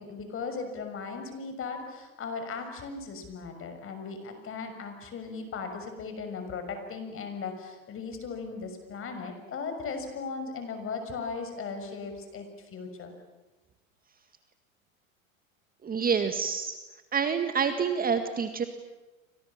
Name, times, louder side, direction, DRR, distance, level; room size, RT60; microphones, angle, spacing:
voice 1, 0.0-13.1, left 4 dB, 30° left, 6 dB, 6.6 m, -37 dB
voice 2, 15.8-16.8 17.1-18.6, right 6 dB, 20° right, 8 dB, 2.0 m, -27 dB
30.0 x 26.0 x 7.4 m, 1.1 s
hypercardioid pair, 105°, 42 cm